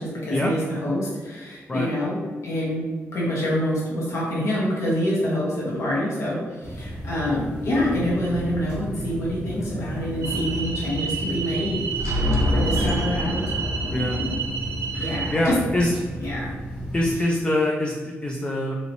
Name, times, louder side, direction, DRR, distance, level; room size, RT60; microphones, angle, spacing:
voice 1, 0.0-2.2 2.4-11.8 12.5-13.4 13.9-14.4 15.0-15.6 16.2-16.6, equal, 70° left, -6 dB, 1.0 m, -26 dB
sound 1, 6.6-17.2, equal, 10° right, 1.0 m, -34 dB
sound 2, 10.2-15.3, right 1 dB, 70° right, 0.5 m, -26 dB
voice 2, 13.9-14.2 14.9-15.9 16.9-18.8, left 1 dB, 20° left, -1 dB, 0.4 m, -24 dB
2.9 x 2.8 x 2.7 m, 1.4 s
cardioid pair, 95°, 5 cm